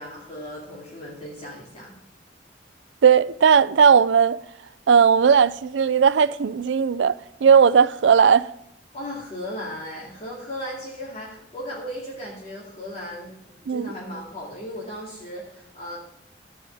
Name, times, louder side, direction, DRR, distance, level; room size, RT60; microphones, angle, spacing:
voice 1, 0.0-2.0 8.9-16.0, equal, 35° left, 2.4 m, -36 dB
voice 2, 3.0-4.4 4.9-8.5 13.7-13.9, right 6 dB, 75° right, 0.4 m, -17 dB
13.5 x 4.8 x 7.7 m
head